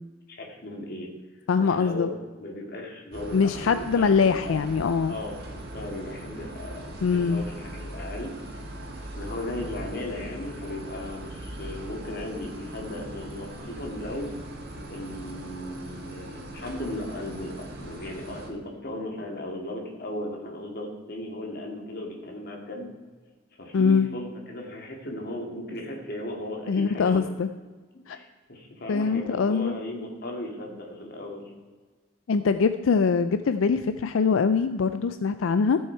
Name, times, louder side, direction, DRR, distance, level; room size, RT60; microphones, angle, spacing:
voice 1, 0.3-1.1 1.6-4.6 5.1-5.4 5.7-8.3 9.2-14.3 14.9-22.9 23.6-27.2 28.1-31.4, left 1 dB, 50° left, 0 dB, 2.2 m, -36 dB
voice 2, 1.5-2.1 3.3-5.1 7.0-7.4 23.7-24.1 26.7-27.5 28.1-28.2 28.9-29.7 32.3-35.8, left 5 dB, 85° left, 10 dB, 0.4 m, -23 dB
sound 1, 3.1-18.5, right 1 dB, 50° right, 2.0 m, -40 dB
15.0 x 6.4 x 4.6 m, 1.4 s
head